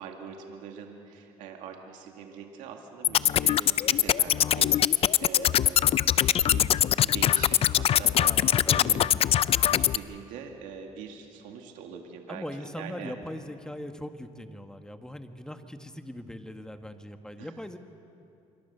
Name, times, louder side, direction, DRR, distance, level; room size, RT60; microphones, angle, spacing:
voice 1, 0.0-6.7 7.0-9.1 9.6-13.2 17.4-17.6, right 7 dB, 90° right, 3 dB, 2.1 m, -43 dB
sound 1, 3.0-10.0, left 10 dB, 50° left, 0.5 m, -22 dB
voice 2, 8.2-9.2 12.3-17.8, left 1 dB, 5° left, 7 dB, 1.5 m, -40 dB
26.5 x 24.0 x 6.9 m, 2.6 s
cardioid pair, 100°, 13 cm